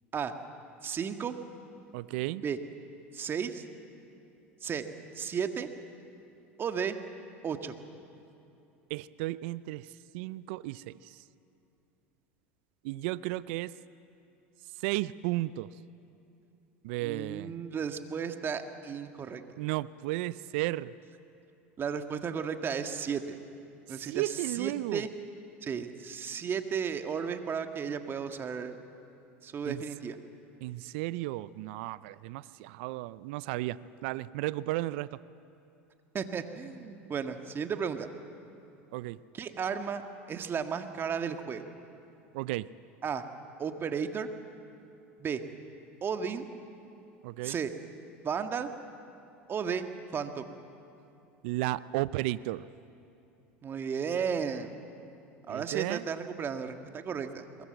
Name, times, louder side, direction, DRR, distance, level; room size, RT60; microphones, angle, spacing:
voice 1, 0.8-1.3 2.4-2.6 3.1-3.6 4.6-4.9 5.1-5.7 6.6-7.0 7.4-7.7 17.0-19.4 21.8-23.4 23.9-25.1 25.6-28.8 29.4-30.2 36.1-38.1 39.3-40.0 40.3-41.6 43.0-43.2 43.6-44.3 45.2-45.4 46.0-46.5 47.4-47.7 48.2-48.7 49.5-49.8 50.1-50.5 53.6-54.7 55.5-57.6, right 6 dB, 35° right, 7 dB, 1.7 m, -34 dB
voice 2, 1.9-2.4 8.9-9.9 10.1-11.2 12.8-13.7 14.8-15.7 16.8-17.5 19.6-20.9 23.9-25.1 29.7-29.8 30.6-35.2 38.9-39.2 42.3-42.7 47.2-47.6 51.4-52.7 55.5-56.0, right 18 dB, 70° right, 18 dB, 0.5 m, -34 dB
22.5 x 20.0 x 8.0 m, 2.8 s
hypercardioid pair, 85°, 7 cm